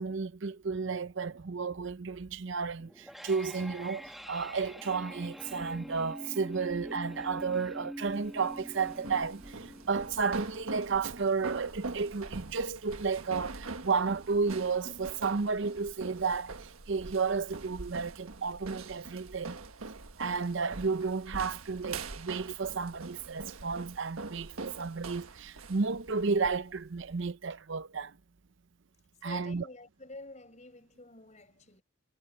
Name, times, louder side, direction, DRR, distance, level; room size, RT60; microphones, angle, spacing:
voice 1, 0.0-19.6 20.2-28.2 29.2-29.7, right 5 dB, 60° right, 0.6 m, -32 dB
sound 1, 2.8-13.8, equal, ahead, 2.0 m, -46 dB
sound 2, 8.1-27.3, right 3 dB, 90° right, 1.5 m, -44 dB
voice 2, 29.2-31.8, left 2 dB, 35° left, 4.6 m, -49 dB
head